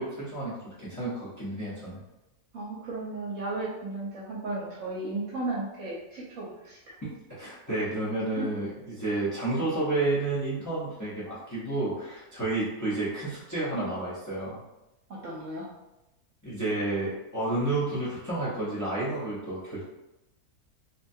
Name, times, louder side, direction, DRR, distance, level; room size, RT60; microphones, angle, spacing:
voice 1, 0.0-2.0 7.0-14.6 16.4-19.8, right 2 dB, 30° left, -9 dB, 0.3 m, -31 dB
voice 2, 2.5-6.9 8.4-8.5 15.2-15.7, right 2 dB, 70° right, -5 dB, 0.9 m, -35 dB
2.8 x 2.2 x 2.6 m, 0.94 s
omnidirectional pair, 1.6 m